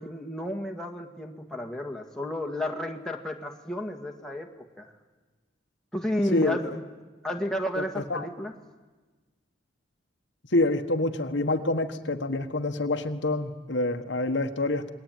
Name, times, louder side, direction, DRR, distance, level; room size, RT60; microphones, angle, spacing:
voice 1, 0.0-4.9 5.9-6.8 7.2-8.5, left 1 dB, 5° left, 1 dB, 1.8 m, -32 dB
voice 2, 6.3-6.8 7.8-8.3 10.5-14.9, left 2 dB, 65° left, 7 dB, 1.4 m, -27 dB
27.5 x 21.5 x 9.2 m, 1.3 s
head